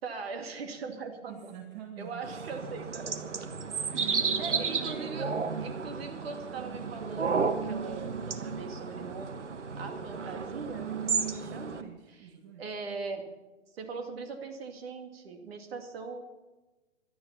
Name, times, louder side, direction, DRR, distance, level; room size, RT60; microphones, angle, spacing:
voice 1, 0.0-1.5 2.0-3.4 4.4-9.4 9.8-11.0 11.5-12.3 12.6-13.2 13.7-16.2, right 4 dB, 55° right, 5 dB, 2.5 m, -40 dB
voice 2, 1.3-2.5 3.9-5.4 11.0-12.7, right 8 dB, 35° right, 4 dB, 1.6 m, -45 dB
sound 1, 2.2-11.8, right 5 dB, 75° right, 1.4 m, -33 dB
17.0 x 12.0 x 5.8 m, 1.2 s
figure-of-eight pair, 125°, 36 cm